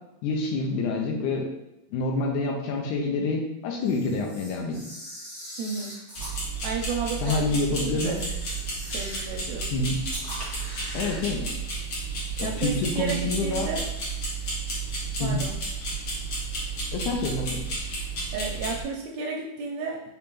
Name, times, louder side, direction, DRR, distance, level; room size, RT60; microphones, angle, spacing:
voice 1, 0.2-1.5 1.9-4.8 7.2-8.2 9.7-10.0 10.9-11.5 12.4-13.7 15.2-15.4 16.9-17.6, left 3 dB, 90° left, 1 dB, 2.1 m, -27 dB
Camera, 3.8-6.4 7.2-7.4 8.0-9.3 10.0-11.3, equal, 35° left, 0.7 m, -41 dB
voice 2, 5.6-6.0 6.6-8.2 8.9-9.9 12.4-13.8 15.2-15.5 18.0-20.0, right 5 dB, 80° right, 0 dB, 1.6 m, -33 dB
sound 1, 6.2-18.8, right 3 dB, 55° left, 1.4 m, -32 dB
5.1 x 3.6 x 2.9 m, 0.91 s
omnidirectional pair, 3.5 m